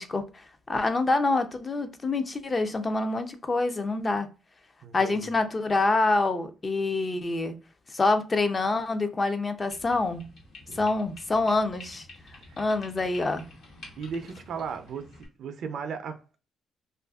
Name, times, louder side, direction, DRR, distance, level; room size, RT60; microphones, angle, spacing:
voice 1, 0.0-4.3 4.9-7.6 7.9-10.3 10.7-12.1 12.6-13.4, left 3 dB, 30° left, 0.4 m, -26 dB
voice 2, 4.8-5.3 10.7-10.9 12.5-12.7 14.0-15.1 15.4-16.4, right 6 dB, 65° right, 0.4 m, -36 dB
sound 1, 9.7-15.3, left 2 dB, 70° left, 0.9 m, -49 dB
2.6 x 2.4 x 2.3 m
cardioid pair, 90°, 0 cm